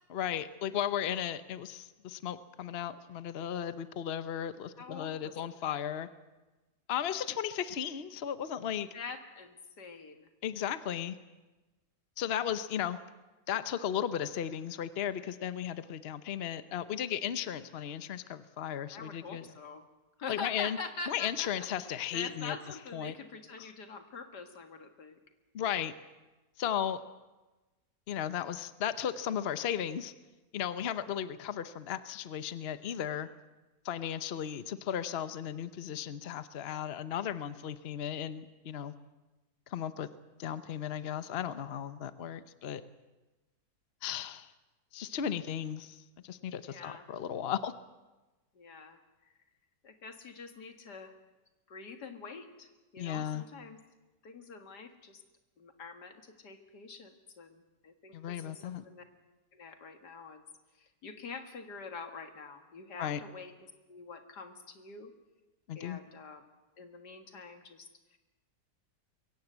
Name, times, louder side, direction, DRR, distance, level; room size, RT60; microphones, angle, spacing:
voice 1, 0.1-6.1 6.9-8.9 10.4-11.1 12.2-13.0 13.5-19.5 20.3-20.8 21.1-22.6 22.9-23.1 23.6-23.7 25.5-25.9 26.6-27.0 28.1-30.1 30.5-33.3 33.8-38.9 39.7-40.1 40.4-42.8 44.0-44.5 44.9-47.7 53.0-53.4 58.1-58.8 63.0-63.2 65.7-66.0, left 9 dB, 45° left, 12 dB, 1.0 m, -35 dB
voice 2, 4.8-5.9 8.9-10.3 18.9-19.8 20.2-25.2 46.7-47.0 48.6-49.0 49.8-51.1 51.7-52.7 52.9-53.8 54.2-55.2 55.6-59.0 59.5-60.4 60.8-63.5 63.9-65.1 65.7-66.4 66.8-68.2, left 4 dB, 85° left, 6 dB, 2.4 m, -45 dB
22.5 x 17.0 x 8.0 m, 1.1 s
omnidirectional pair, 1.7 m